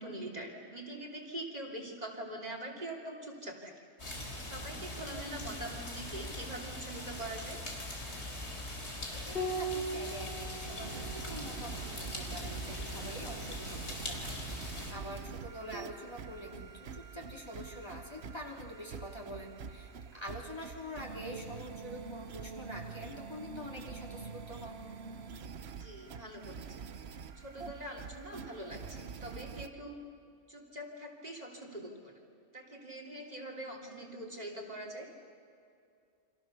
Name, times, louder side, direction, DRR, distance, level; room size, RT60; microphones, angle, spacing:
voice 1, 0.0-3.7 4.4-7.6 15.0-15.1 25.7-26.9 27.3-30.0 30.5-32.2 32.5-35.1, right 1 dB, 35° right, 0 dB, 3.2 m, -43 dB
sound 1, 4.0-14.9, left 1 dB, 70° left, 3.8 m, -41 dB
voice 2, 9.2-24.8, equal, 25° left, -1 dB, 3.1 m, -46 dB
Piano, 9.3-14.2 15.8-16.6, right 2 dB, 50° left, 4.7 m, -42 dB
sound 2, 10.8-29.7, right 6 dB, 65° right, 1.2 m, -46 dB
29.5 x 25.5 x 6.8 m, 2.4 s
omnidirectional pair, 1.2 m